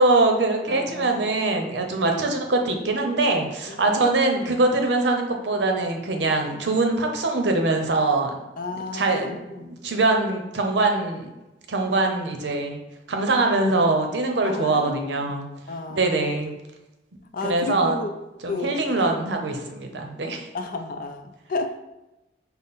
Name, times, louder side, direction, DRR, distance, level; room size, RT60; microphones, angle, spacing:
voice 1, 0.0-8.3 8.9-11.3 11.7-12.8 13.1-15.5 15.9-16.5 17.4-18.0 18.4-20.5, right 2 dB, 75° right, 3 dB, 0.6 m, -23 dB
voice 2, 0.7-1.3 2.0-2.3 3.7-4.4 8.6-9.7 14.4-15.2 15.7-16.4 17.3-18.1 18.5-19.1 20.5-21.8, left 3 dB, 50° left, 6 dB, 0.4 m, -33 dB
5.5 x 2.0 x 4.0 m, 0.99 s
head